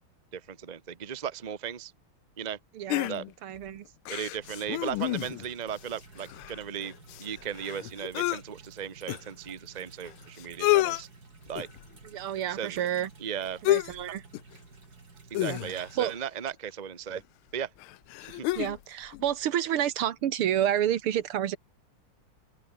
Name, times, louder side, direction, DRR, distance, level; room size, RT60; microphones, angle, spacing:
voice 1, 0.3-1.9 2.4-2.6 3.1-3.2 4.1-11.1 11.5-11.7 12.5-12.8 13.2-13.6 15.3-17.2 17.5-17.7 18.2-18.5, right 8 dB, 25° right, 0.9 m, -36 dB
voice 2, 2.8-3.1 3.4-3.9 12.0-13.1 13.6-14.2 15.5-16.1 18.6-21.6, right 10 dB, 85° right, 2.1 m, -29 dB
sound 1, 2.9-3.6 4.1-5.5 5.8-5.9 6.2-8.4 9.1-9.2 10.1-10.2 10.4-11.0 11.6-11.8 13.7-14.0 14.3-14.5 15.3-16.0 17.1-17.2 17.8-18.8 19.1-19.2, left 18 dB, 80° left, 1.4 m, -29 dB
sound 2, 4.4-16.2, right 4 dB, 45° right, 3.8 m, -53 dB
open air
omnidirectional pair, 2.4 m